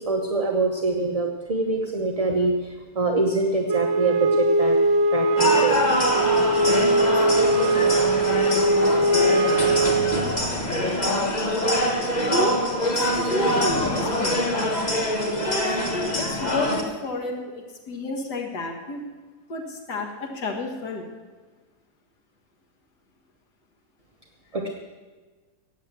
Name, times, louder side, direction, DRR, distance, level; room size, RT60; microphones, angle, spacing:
voice 1, 0.0-4.8 5.1-5.8 24.5-24.7, right 3 dB, 25° right, 1 dB, 0.9 m, -24 dB
Wind instrument woodwind instrument, 3.7-10.5, right 2 dB, 55° right, 0.9 m, -21 dB
sound 1, 5.4-16.8, left 1 dB, 25° left, 1.7 m, -24 dB
voice 2, 12.3-14.4 15.4-19.0 19.5-21.1, left 2 dB, 80° left, 1 dB, 2.4 m, -30 dB
15.5 x 9.3 x 7.5 m, 1.4 s
omnidirectional pair, 1.8 m